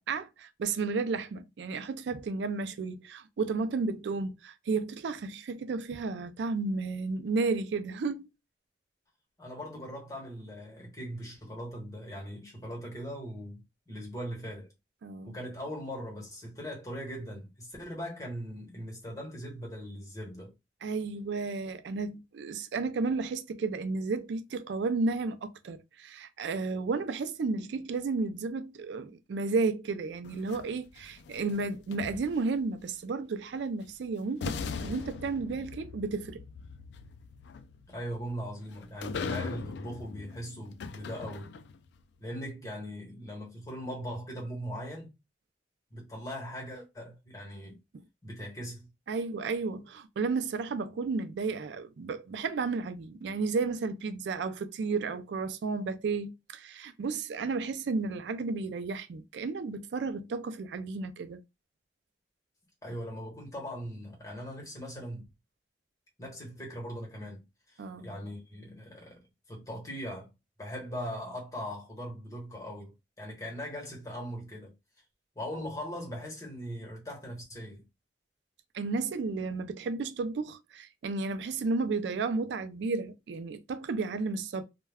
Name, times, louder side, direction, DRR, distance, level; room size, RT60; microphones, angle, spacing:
voice 1, 0.1-8.3 15.0-15.4 20.8-36.4 47.9-48.0 49.1-61.4 67.8-68.0 78.7-84.6, right 4 dB, 80° right, 0.4 m, -33 dB
voice 2, 9.4-14.7 15.2-20.5 37.9-41.5 42.2-45.1 45.9-47.8 48.2-48.9 62.8-65.3 66.2-67.4 67.7-69.2 69.5-70.3 70.6-72.9 73.2-74.7 75.3-77.8, equal, 20° left, 1.1 m, -40 dB
sound 1, 30.2-32.6 33.8-33.9 34.4-41.9, left 5 dB, 75° left, 0.3 m, -40 dB
2.2 x 2.1 x 3.4 m
head